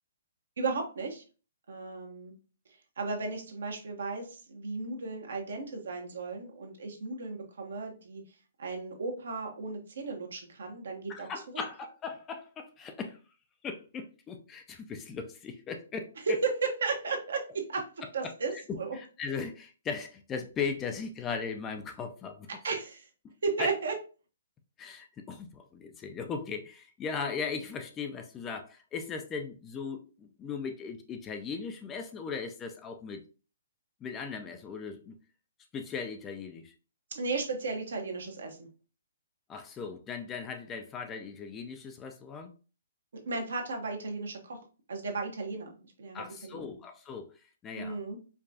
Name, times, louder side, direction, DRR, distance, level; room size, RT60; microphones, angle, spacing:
voice 1, 0.6-1.2 1.7-2.3 3.0-8.2 8.6-11.3 11.5-11.6 16.3-17.8 18.1-19.0 22.6-23.1 23.4-23.9 37.1-38.7 43.1-44.6 44.9-46.7 47.8-48.2, right 4 dB, 75° right, 2 dB, 1.0 m, -34 dB
voice 2, 11.1-13.2 13.6-16.1 18.2-18.3 18.9-22.5 23.6-23.7 24.8-33.2 34.0-35.2 35.7-36.7 39.5-42.5 46.1-47.3 47.6-48.0, left 5 dB, 20° left, 5 dB, 0.4 m, -38 dB
4.6 x 2.3 x 2.7 m, 0.35 s
hypercardioid pair, 140°, 0 cm